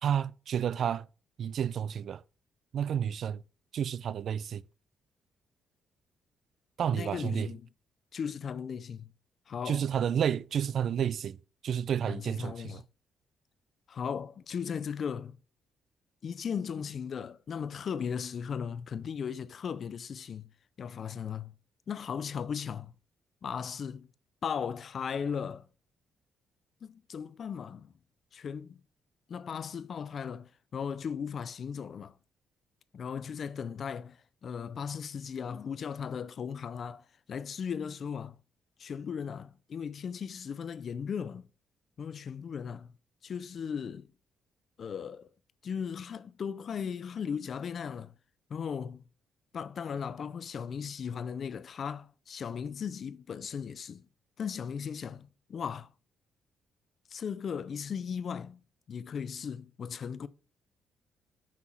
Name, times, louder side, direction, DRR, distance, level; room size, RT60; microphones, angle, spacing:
voice 1, 0.0-1.1 1.4-2.2 2.7-3.4 3.7-4.6 6.8-7.5 9.7-11.4 11.6-12.8, right 8 dB, 60° right, 0.3 m, -30 dB
voice 2, 6.9-7.7 8.1-9.1 9.5-9.9 12.0-12.8 13.9-15.4 16.2-20.5 20.8-21.5 21.9-22.9 23.4-24.1 24.4-25.7 26.8-27.9 28.3-28.8 29.3-32.2 32.9-38.4 38.8-41.5 42.0-42.9 43.2-44.1 44.8-45.3 45.6-48.1 48.5-49.0 49.5-54.1 54.4-55.9 57.1-58.6 58.9-60.3, left 7 dB, 55° left, 0.5 m, -37 dB
6.1 x 5.7 x 4.4 m
cardioid pair, 90°, 0 cm